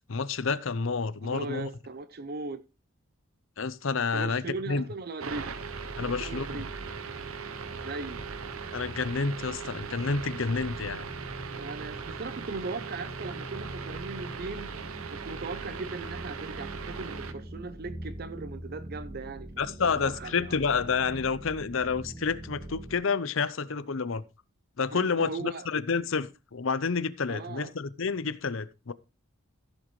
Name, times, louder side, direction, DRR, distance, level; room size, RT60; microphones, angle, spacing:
voice 1, 0.1-1.7 3.6-4.8 6.0-6.6 8.7-11.1 19.6-24.2 24.8-28.9, left 5 dB, 65° left, 0.7 m, -29 dB
voice 2, 1.2-2.6 4.1-5.5 6.0-6.7 7.8-8.2 11.5-14.7 15.1-19.5 19.8-20.6 24.9-25.7 27.3-27.7, right 3 dB, 45° right, 0.6 m, -38 dB
sound 1, 5.2-17.3, right 6 dB, 80° right, 0.9 m, -40 dB
sound 2, 5.3-23.0, right 1 dB, 15° right, 2.0 m, -44 dB
sound 3, 6.6-14.4, equal, 15° left, 1.2 m, -48 dB
15.0 x 7.5 x 3.1 m
head